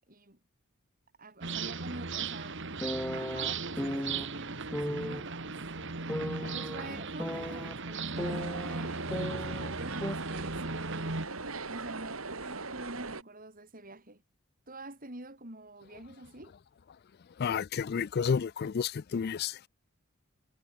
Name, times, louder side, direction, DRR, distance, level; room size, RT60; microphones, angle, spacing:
voice 1, 0.1-0.4 1.2-2.6 3.1-5.6 6.5-11.2 11.7-14.2 14.7-16.5, right 2 dB, 40° right, 4.7 m, -47 dB
sound 1, 1.4-11.3, right 4 dB, 60° right, 2.1 m, -37 dB
sound 2, 2.8-4.3 4.7-5.2 6.1-7.7 8.2-9.8 10.0-10.2, equal, 5° left, 0.8 m, -36 dB
sound 3, 8.1-13.2, right 3 dB, 75° right, 3.6 m, -40 dB
voice 2, 17.4-19.7, left 6 dB, 50° left, 0.4 m, -31 dB
head